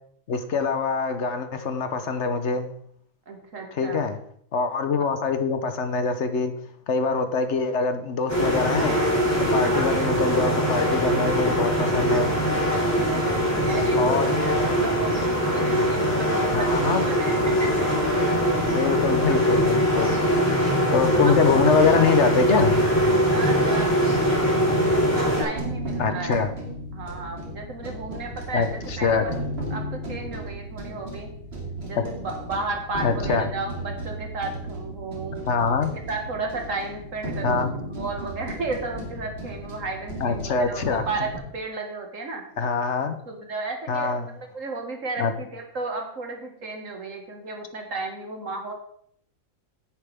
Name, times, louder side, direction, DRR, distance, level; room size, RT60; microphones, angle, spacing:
voice 1, 0.3-2.7 3.8-4.2 4.5-6.5 6.9-9.0 9.5-12.3 13.9-14.3 16.5-17.1 18.6-20.2 20.9-22.8 26.0-26.5 28.5-29.3 32.0-32.1 33.0-33.5 35.5-35.9 37.4-37.7 40.2-41.0 42.6-43.2 43.9-44.2 45.2-45.3, left 5 dB, 60° left, 9 dB, 1.1 m, -24 dB
voice 2, 3.3-4.1 9.6-9.9 12.9-17.9 21.1-21.8 23.3-24.5 24.9-26.4 26.9-29.3 29.7-31.3 31.8-35.5 35.8-42.4 43.3-48.7, right 3 dB, 70° right, 3 dB, 2.1 m, -34 dB
sound 1, 8.3-25.4, equal, 10° left, 4.1 m, -22 dB
sound 2, 25.6-41.4, right 1 dB, 50° right, 2.6 m, -35 dB
10.0 x 9.7 x 3.5 m, 0.67 s
omnidirectional pair, 1.4 m